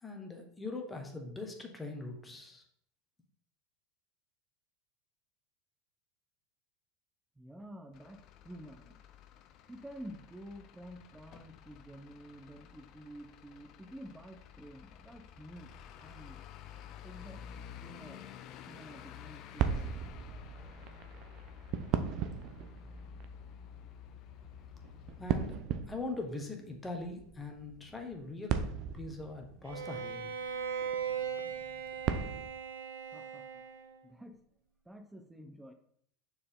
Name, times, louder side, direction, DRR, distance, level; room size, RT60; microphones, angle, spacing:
voice 1, 0.0-2.6 25.2-25.6 25.9-28.7 28.9-30.3, left 3 dB, 15° left, 3 dB, 1.4 m, -41 dB
voice 2, 7.4-9.0 9.7-15.7 16.0-16.4 17.0-17.4 17.8-18.4 18.7-19.9 33.1-33.6 34.0-34.4 34.8-35.7, equal, 10° right, 5 dB, 0.8 m, -50 dB
Truck / Idling, 7.9-25.6, left 9 dB, 50° left, 0.5 m, -51 dB
sound 1, 19.6-32.5, right 8 dB, 50° right, 0.6 m, -38 dB
Bowed string instrument, 29.6-34.1, right 7 dB, 85° right, 0.7 m, -39 dB
6.5 x 4.5 x 3.8 m, 0.67 s
hypercardioid pair, 85°, 0 cm